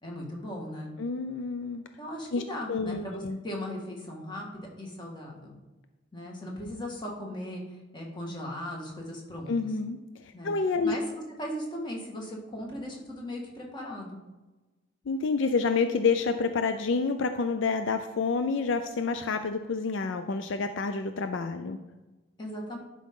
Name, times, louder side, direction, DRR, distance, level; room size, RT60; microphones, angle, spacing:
voice 1, 0.0-1.0 2.0-5.5 6.1-9.5 10.3-10.5 10.8-14.2 22.4-22.8, equal, 25° left, -1 dB, 1.7 m, -38 dB
voice 2, 1.0-1.8 2.3-2.4 2.7-3.4 9.5-11.0 15.1-21.8, left 4 dB, 65° left, 8 dB, 0.5 m, -28 dB
11.5 x 5.0 x 3.7 m, 1.1 s
head